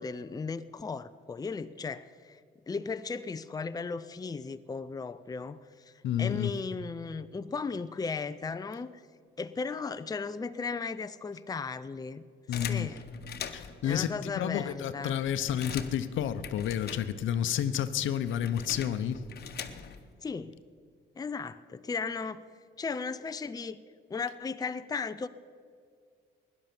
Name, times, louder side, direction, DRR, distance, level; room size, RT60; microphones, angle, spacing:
voice 1, 0.0-2.4 2.7-5.9 6.2-8.9 9.4-12.2 12.5-13.0 13.8-15.2 20.2-20.6 21.2-22.4 22.8-23.8 24.1-25.3, left 4 dB, 20° left, 11 dB, 0.5 m, -36 dB
voice 2, 6.0-6.5 12.5-12.9 13.5-14.1 14.4-19.2, left 10 dB, 80° left, 11 dB, 0.8 m, -30 dB
sound 1, 12.5-13.9 14.5-14.6 14.8-17.5 17.7-20.1, left 7 dB, 55° left, 1.1 m, -42 dB
17.0 x 11.0 x 6.9 m, 2.1 s
cardioid pair, 90°, 20 cm